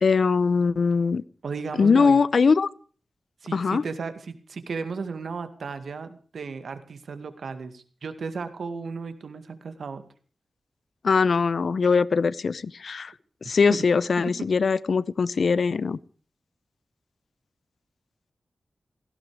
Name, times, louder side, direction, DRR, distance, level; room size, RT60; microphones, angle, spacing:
voice 1, 0.0-1.2 1.8-2.7 3.5-3.8 11.0-13.1 13.4-16.0, left 5 dB, 65° left, 20 dB, 0.7 m, -21 dB
voice 2, 1.4-2.2 3.4-10.0 13.7-13.8 14.2-14.3, right 5 dB, 80° right, 10 dB, 2.1 m, -34 dB
17.5 x 16.0 x 5.0 m, 0.41 s
wide cardioid pair, 90°, 0 cm